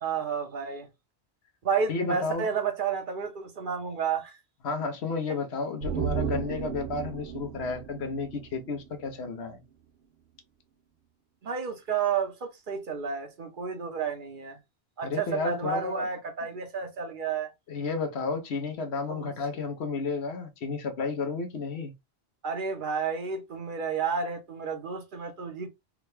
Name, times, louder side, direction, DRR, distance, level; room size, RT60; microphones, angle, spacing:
voice 1, 0.0-0.9 1.6-4.4 11.4-14.6 15.0-17.5 19.1-19.3 22.4-25.7, right 6 dB, 55° right, 0.9 m, -31 dB
voice 2, 1.9-2.5 4.6-9.6 15.0-16.0 17.7-21.9, left 4 dB, 80° left, 1.0 m, -32 dB
sound 1, 5.8-9.2 9.5-9.6, right 8 dB, 90° right, 0.8 m, -34 dB
3.6 x 2.2 x 3.1 m
omnidirectional pair, 1.1 m